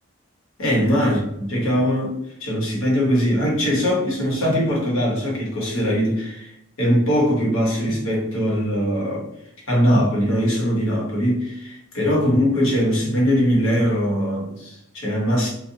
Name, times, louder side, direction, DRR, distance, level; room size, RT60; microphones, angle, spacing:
voice 1, 0.6-9.3 9.7-15.5, equal, 70° left, -3 dB, 0.9 m, -21 dB
2.6 x 2.1 x 2.7 m, 0.79 s
head